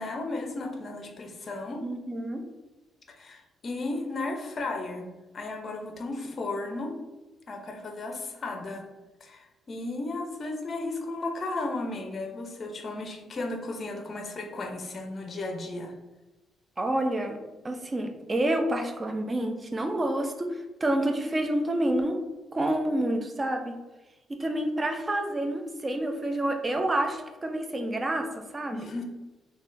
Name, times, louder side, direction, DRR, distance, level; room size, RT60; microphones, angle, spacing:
voice 1, 0.0-1.8 3.1-6.9 7.5-8.9 9.2-15.9 28.7-29.0, left 2 dB, 45° left, 3 dB, 0.5 m, -34 dB
voice 2, 1.8-2.4 16.8-17.4 17.6-22.2 22.5-23.8 24.4-28.9, right 1 dB, 25° right, 5 dB, 0.4 m, -28 dB
3.5 x 2.3 x 2.5 m, 1.1 s
cardioid pair, 90°, 0 cm